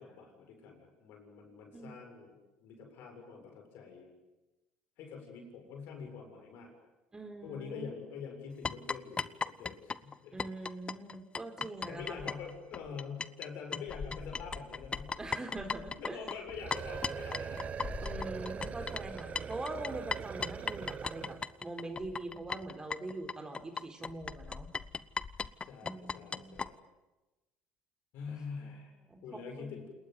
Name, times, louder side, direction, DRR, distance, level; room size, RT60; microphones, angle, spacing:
voice 1, 0.0-2.3 2.6-4.1 5.0-6.7 7.4-10.4 11.9-15.1 16.0-17.7 25.6-26.8 28.1-28.9 29.2-29.9, left 6 dB, 65° left, 4 dB, 7.3 m, -45 dB
voice 2, 7.1-7.9 10.3-12.2 15.2-16.2 18.0-24.7 25.8-26.6 28.6-28.8 29.1-29.9, right 2 dB, 20° right, 6 dB, 4.1 m, -43 dB
sound 1, 8.6-13.5 13.7-26.7, left 5 dB, 30° left, 0.9 m, -38 dB
sound 2, 16.5-21.5, right 7 dB, 40° right, 1.0 m, -42 dB
28.5 x 20.0 x 9.6 m, 1.1 s
hypercardioid pair, 70°, 4 cm